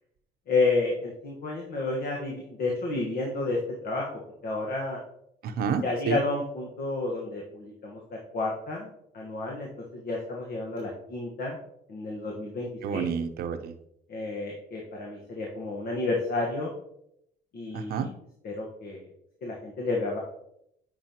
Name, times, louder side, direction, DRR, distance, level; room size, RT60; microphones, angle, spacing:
voice 1, 0.5-3.6 3.8-4.1 4.4-5.0 5.8-8.0 8.3-8.9 9.1-11.6 11.9-13.1 14.1-16.7 17.5-18.1 18.4-19.0 19.4-20.2, left 3 dB, 60° left, -1 dB, 1.4 m, -30 dB
voice 2, 5.4-6.2 12.8-13.7 17.7-18.1, right 6 dB, 65° right, 9 dB, 0.7 m, -29 dB
8.8 x 5.4 x 2.9 m, 0.76 s
cardioid pair, 110°, 17 cm